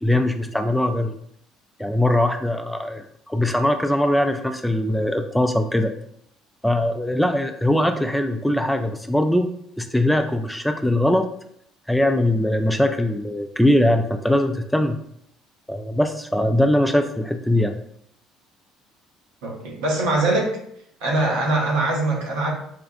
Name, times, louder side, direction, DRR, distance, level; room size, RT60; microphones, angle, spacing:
voice 1, 0.0-1.2 1.8-5.9 6.6-9.5 9.8-11.3 11.9-15.0 15.7-17.7, left 1 dB, 5° left, 6 dB, 0.3 m, -21 dB
voice 2, 19.4-20.6 21.0-22.5, right 2 dB, 75° right, -2 dB, 0.9 m, -22 dB
4.4 x 2.3 x 2.6 m, 0.70 s
hypercardioid pair, 60°, 0 cm